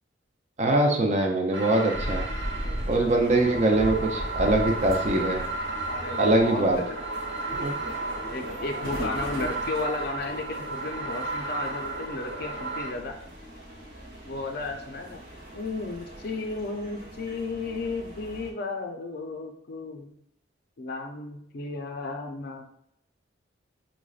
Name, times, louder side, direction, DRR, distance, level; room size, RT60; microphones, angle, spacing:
voice 1, 0.6-2.3 2.9-5.5 6.2-6.8 7.6-7.8, right 2 dB, 35° right, 1 dB, 0.4 m, -23 dB
sound 1, 1.5-12.9, right 2 dB, 85° right, 1.0 m, -33 dB
sound 2, 2.0-18.5, equal, 55° right, 1.2 m, -40 dB
voice 2, 2.9-3.6 5.9-7.0 8.3-13.2 14.2-15.2 15.5-20.1 20.8-22.7, left 3 dB, 55° left, 3 dB, 0.4 m, -34 dB
6.1 x 2.1 x 2.3 m, 0.73 s
head